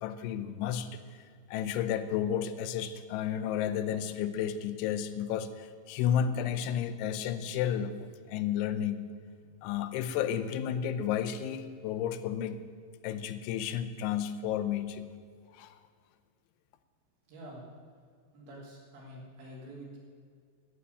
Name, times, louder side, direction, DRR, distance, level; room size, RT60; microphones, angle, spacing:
voice 1, 0.0-1.0 1.5-9.1 9.6-12.6 13.0-15.1 15.6-15.8, left 9 dB, 90° left, 10 dB, 3.2 m, -32 dB
voice 2, 17.3-17.7 18.3-20.0, right 1 dB, 75° right, -4 dB, 5.6 m, -47 dB
11.0 x 8.7 x 9.6 m, 2.1 s
omnidirectional pair, 5.3 m